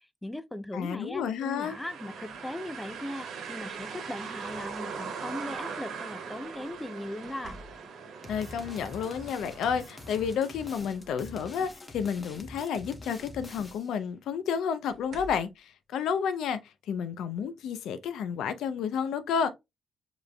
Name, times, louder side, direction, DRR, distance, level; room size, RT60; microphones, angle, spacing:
voice 1, 0.2-7.6, left 1 dB, 10° left, 0.4 m, -38 dB
voice 2, 0.7-1.8 8.3-19.5, left 7 dB, 85° left, 0.5 m, -31 dB
sound 1, 1.4-11.2, right 6 dB, 85° right, 1.2 m, -41 dB
Opening closing pantry door, 2.3-2.6 3.9-4.1 7.2-8.2 10.0-10.1 10.5-11.6 12.1-12.3 13.7-13.8 14.9-15.6 17.3-17.5 18.0-18.3, equal, 60° right, 1.5 m, -50 dB
sound 2, 8.2-14.0, left 2 dB, 30° left, 0.9 m, -45 dB
4.9 x 3.2 x 2.2 m
cardioid pair, 85°, 0 cm